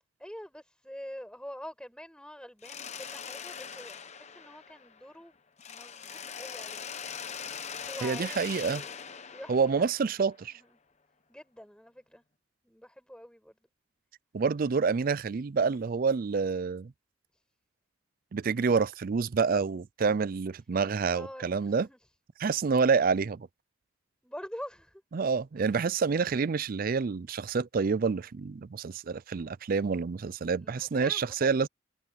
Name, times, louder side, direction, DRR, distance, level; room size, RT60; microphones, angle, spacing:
voice 1, 0.2-5.4 5.7-6.8 7.8-9.0 9.3-9.9 10.5-10.8 11.3-12.2 12.6-13.6 17.3-17.4 21.0-22.0 24.2-25.0 25.6-25.8 30.5-31.6, equal, 5° left, 5.6 m, -46 dB
Mechanisms, 2.6-5.2 5.6-10.4, left 7 dB, 35° left, 1.0 m, -42 dB
voice 2, 8.0-8.8 9.5-10.5 14.3-16.9 18.3-21.9 22.4-23.5 25.1-31.7, right 5 dB, 45° right, 0.4 m, -28 dB
head